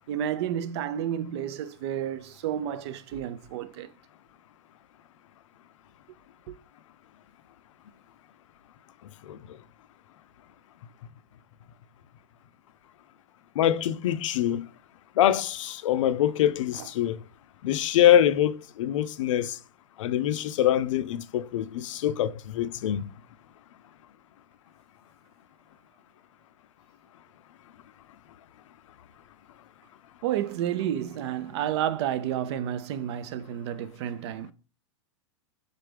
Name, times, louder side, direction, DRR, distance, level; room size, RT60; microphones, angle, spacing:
voice 1, 0.1-3.9 6.5-6.6 16.8-16.9 30.2-34.5, right 10 dB, 55° right, 0.4 m, -31 dB
voice 2, 9.2-9.6 13.6-14.7 15.2-17.2 17.6-19.6 20.0-23.1, left 11 dB, 70° left, 0.4 m, -24 dB
4.0 x 3.2 x 3.3 m
hypercardioid pair, 120°, 17 cm